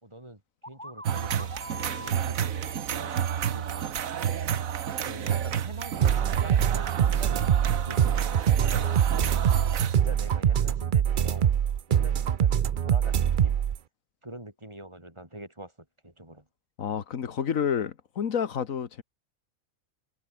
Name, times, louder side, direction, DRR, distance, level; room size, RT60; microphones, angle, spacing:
voice 1, 0.0-1.6 1.8-3.9 5.0-9.4 9.9-11.6 11.9-13.6 14.2-15.7 16.0-16.5, right 1 dB, 20° right, 6.0 m, -44 dB
sound 1, 0.6-4.4, equal, 5° left, 7.0 m, -45 dB
sound 2, 1.0-10.0, right 9 dB, 85° right, 1.5 m, -30 dB
sound 3, 6.0-13.8, right 9 dB, 50° right, 0.6 m, -24 dB
voice 2, 16.8-19.0, left 7 dB, 80° left, 1.7 m, -29 dB
omnidirectional pair, 1.4 m